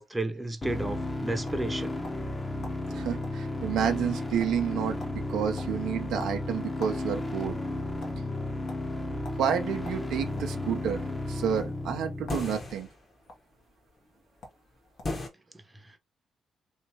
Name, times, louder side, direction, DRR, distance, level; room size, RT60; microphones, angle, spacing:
voice 1, 0.0-2.0, right 2 dB, 15° right, 0.7 m, -32 dB
sound 1, 0.6-12.6, left 2 dB, 25° left, 0.8 m, -34 dB
sound 2, 1.4-2.3 2.6-2.8 3.2-3.4 3.7-4.1 4.4-4.7 5.0-5.2 5.6-7.0 7.3-8.2 8.7-8.8 9.2-9.4 9.8-10.6 11.3-11.5 12.2-12.5 12.8-13.4 14.1-14.2 14.4-14.6 15.0-15.2, left 1 dB, 70° left, 1.0 m, -46 dB
voice 2, 2.9-7.6 9.4-11.0 11.3-12.9, right 8 dB, 75° right, 0.5 m, -30 dB
sound 3, 12.3-13.1 15.0-15.3, left 2 dB, 40° left, 1.2 m, -34 dB
3.1 x 2.9 x 2.9 m
supercardioid pair, 55°, 0 cm